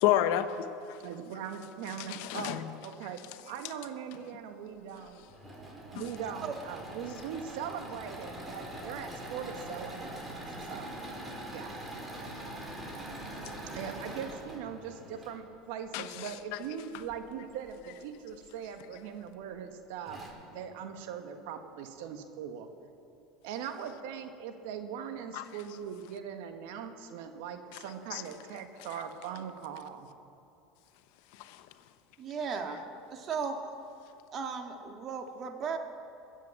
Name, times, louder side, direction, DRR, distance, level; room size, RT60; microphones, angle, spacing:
voice 1, 0.0-1.0 2.0-2.6 15.9-16.6 25.3-25.4 28.1-28.2 31.3-31.7, left 12 dB, 70° left, 0.9 m, -30 dB
voice 2, 1.0-5.2 5.9-11.0 11.5-11.8 13.7-20.2 20.5-22.7 23.4-30.1, right 8 dB, 75° right, 1.4 m, -41 dB
Engine / Mechanisms, 5.1-15.4 17.0-17.7 18.3-18.4 18.7-18.8 19.7-19.8 20.1-20.3, right 1 dB, 20° right, 4.2 m, -43 dB
voice 3, 32.2-32.8 33.1-33.6 34.3-35.8, right 6 dB, 45° right, 1.9 m, -35 dB
21.5 x 8.1 x 7.2 m
hypercardioid pair, 95°, 0 cm